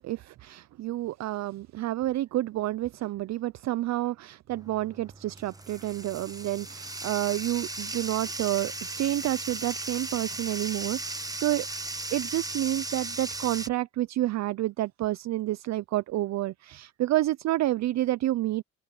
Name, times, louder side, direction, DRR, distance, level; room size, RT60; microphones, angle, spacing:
voice 1, 0.0-11.7 12.1-18.6, right 15 dB, 65° right, 0.5 m, -29 dB
Bathtub (filling or washing), 4.5-13.7, right 2 dB, 10° right, 1.2 m, -37 dB
open air
cardioid pair, 90°, 30 cm